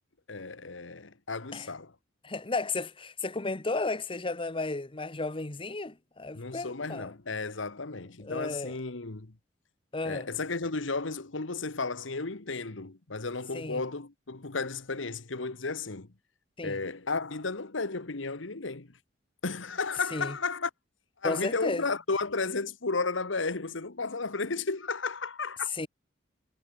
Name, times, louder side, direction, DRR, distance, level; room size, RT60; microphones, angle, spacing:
voice 1, 0.3-1.9 6.3-9.3 10.0-16.1 16.6-19.0 19.4-20.7 21.2-25.7, left 4 dB, 90° left, 1.5 m, -33 dB
voice 2, 2.2-7.1 8.2-8.7 9.9-10.3 13.5-13.8 16.6-16.8 20.1-20.3 21.2-21.8 25.7-25.9, left 3 dB, 30° left, 1.2 m, -33 dB
head